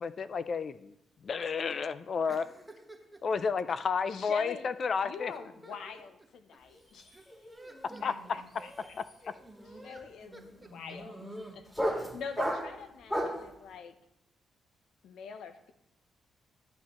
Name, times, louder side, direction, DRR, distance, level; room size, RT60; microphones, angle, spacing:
voice 1, 0.0-0.9 1.2-2.4 3.2-5.3 8.0-8.1, left 5 dB, 55° left, 14 dB, 0.4 m, -31 dB
voice 2, 2.3-3.2 5.3-6.0 6.5-6.6 7.1-8.0 8.5-8.9 9.3-10.0 10.3-10.7, right 1 dB, 10° right, 2 dB, 1.4 m, -53 dB
voice 3, 4.1-4.7 5.0-7.2 8.0-9.0 9.8-10.4 10.7-11.2 11.5-13.9 15.0-15.7, left 6 dB, 80° left, 9 dB, 0.8 m, -44 dB
sound 1, 6.7-7.0 7.3-13.5, equal, 5° left, 2.2 m, -36 dB
11.5 x 7.3 x 3.1 m, 0.80 s
cardioid pair, 75°, 0 cm